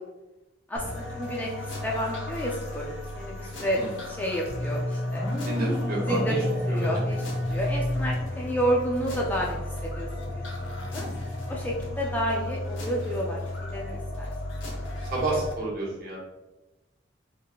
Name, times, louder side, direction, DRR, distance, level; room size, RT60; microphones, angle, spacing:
voice 1, 0.7-1.5 1.8-5.2 6.1-6.4 6.7-7.2 7.5-9.6 9.8-11.1 11.5-13.4 13.7-14.3, equal, 10° left, -3 dB, 0.4 m, -30 dB
sound 1, 0.8-15.5, left 1 dB, 90° left, 0.8 m, -33 dB
sound 2, 5.1-8.2, left 1 dB, 35° left, 1.2 m, -35 dB
voice 2, 5.4-6.4 6.7-6.9 15.1-16.2, right 2 dB, 50° right, -4 dB, 1.1 m, -30 dB
3.5 x 3.5 x 2.3 m, 1.1 s
head